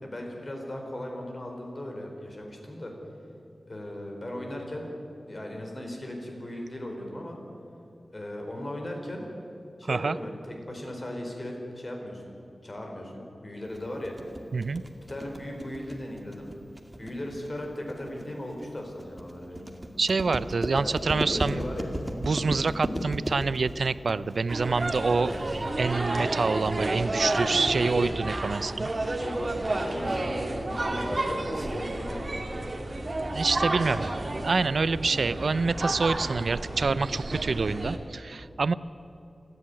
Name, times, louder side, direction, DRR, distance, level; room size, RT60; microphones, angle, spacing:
voice 1, 0.0-2.9 3.7-4.9 5.3-7.4 8.1-9.3 9.8-12.4 12.6-14.1 14.9-16.5 17.0-19.6 20.7-21.9 29.2-30.4 30.6-32.6 33.9-34.0, left 1 dB, 35° left, 1 dB, 4.6 m, -37 dB
sound 1, 13.7-25.7, equal, 15° right, 2.1 m, -35 dB
voice 2, 14.5-14.8 20.0-21.6 22.2-25.3 25.8-28.9 33.3-38.7, right 4 dB, 70° right, 16 dB, 0.5 m, -27 dB
sound 2, 24.5-38.0, right 2 dB, 35° right, 2.1 m, -31 dB
28.5 x 11.0 x 9.8 m, 2.7 s
wide cardioid pair, 100°, 0 cm